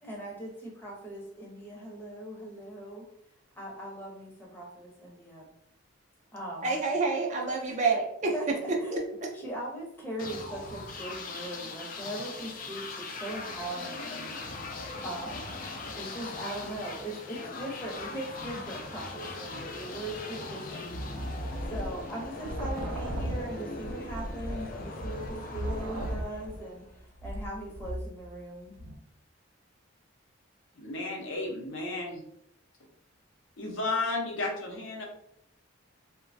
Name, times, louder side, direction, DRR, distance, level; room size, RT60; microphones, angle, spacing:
voice 1, 0.0-3.0 3.6-5.5 6.3-6.8 7.6-7.8 8.3-8.9 9.3-14.6 15.0-15.6 15.9-21.2 21.7-26.8 27.2-28.8, right 1 dB, 10° left, 0.7 m, -40 dB
voice 2, 6.6-8.3 8.9-9.3, right 4 dB, 35° right, 0.4 m, -28 dB
sound 1, 10.2-26.9, left 3 dB, 40° left, 0.3 m, -40 dB
sound 2, 20.9-28.4 28.7-29.0, equal, 90° right, 0.5 m, -37 dB
voice 3, 30.7-32.2 33.6-35.0, left 2 dB, 65° left, 0.7 m, -33 dB
3.0 x 2.1 x 2.5 m
head